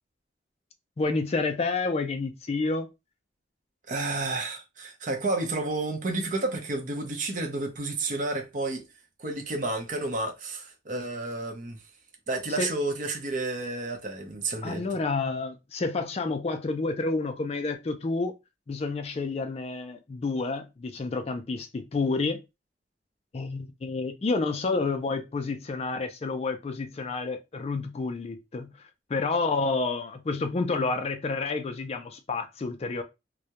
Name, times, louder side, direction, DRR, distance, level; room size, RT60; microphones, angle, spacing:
voice 1, 1.0-2.9 12.6-12.7 14.6-18.3 18.7-22.4 23.3-33.0, left 3 dB, 35° left, 0.3 m, -29 dB
voice 2, 3.9-8.9 9.2-11.8 12.3-14.8, right 2 dB, 45° right, 0.6 m, -31 dB
2.2 x 2.1 x 2.8 m
head